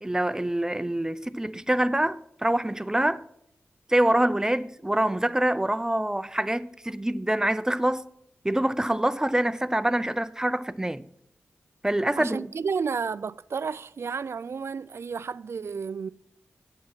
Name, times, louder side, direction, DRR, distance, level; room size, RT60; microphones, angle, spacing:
voice 1, 0.0-3.2 3.9-8.0 8.4-11.0 11.8-12.5, right 1 dB, 15° right, 0.5 m, -25 dB
voice 2, 12.2-16.1, right 5 dB, 70° right, 0.3 m, -31 dB
9.4 x 7.3 x 5.9 m
cardioid pair, 40°, 5 cm